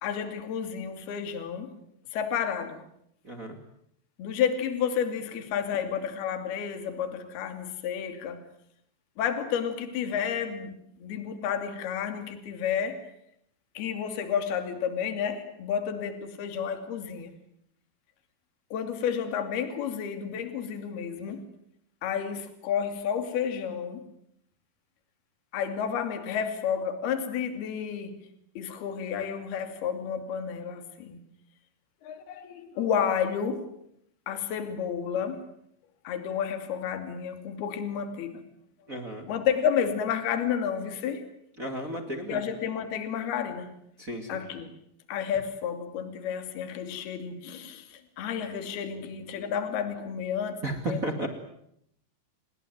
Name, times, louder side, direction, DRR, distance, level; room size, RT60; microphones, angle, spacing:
voice 1, 0.0-1.8 2.1-2.8 4.2-8.4 9.2-13.0 13.8-17.3 18.7-21.4 22.0-24.0 25.5-28.2 28.6-31.2 32.0-33.7 34.3-35.5 36.0-38.4 39.3-41.2 42.3-43.7 44.3-44.7 45.1-50.6 50.9-51.0, left 8 dB, 55° left, 8 dB, 4.2 m, -31 dB
voice 2, 3.2-3.6 38.9-39.3 41.6-42.4 44.0-44.4 50.6-51.3, right 1 dB, 50° right, 6 dB, 0.9 m, -33 dB
29.0 x 20.0 x 9.4 m, 0.75 s
omnidirectional pair, 5.7 m